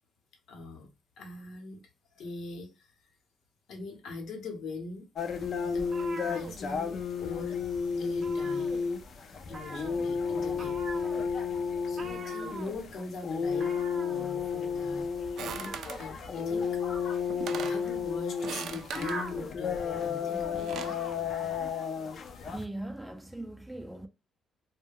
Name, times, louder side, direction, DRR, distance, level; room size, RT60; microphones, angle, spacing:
voice 1, 0.5-0.9 1.2-1.8 2.1-3.1 3.7-5.1 5.6-5.9 6.2-7.6 7.9-8.7 9.5-10.8 11.9-15.1 16.0-17.1 17.4-21.1, left 3 dB, 75° left, 0.8 m, -42 dB
sound 1, 5.2-22.6, left 6 dB, 55° left, 0.5 m, -32 dB
sound 2, 5.7-7.3 7.5-7.8 8.0-9.1 9.5-19.6, right 3 dB, 40° right, 0.7 m, -43 dB
sound 3, 15.4-16.1 17.0-17.1 17.3-17.8 18.4-19.2 20.4-21.0, right 7 dB, 70° right, 0.3 m, -40 dB
voice 2, 22.5-24.1, right 1 dB, 5° right, 0.4 m, -39 dB
2.1 x 2.1 x 3.4 m
cardioid pair, 90°, 0 cm